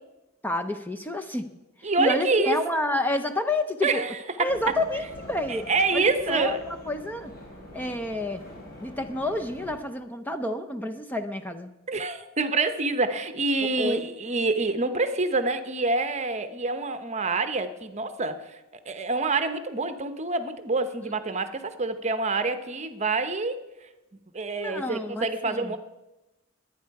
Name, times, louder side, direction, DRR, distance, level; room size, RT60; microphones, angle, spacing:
voice 1, 0.4-1.5 1.8-4.0 4.4-6.6 6.9-7.3 7.7-8.4 8.8-11.7 13.8-14.0 21.3-21.4 24.6-25.8, left 1 dB, 10° left, 7 dB, 0.6 m, -29 dB
voice 2, 1.8-2.6 3.8-4.5 5.5-6.6 11.9-18.6 18.9-23.6 24.3-25.8, right 3 dB, 35° right, 9 dB, 0.9 m, -26 dB
sound 1, 4.5-9.8, left 1 dB, 50° left, 3.3 m, -44 dB
22.5 x 9.4 x 4.7 m, 1.0 s
head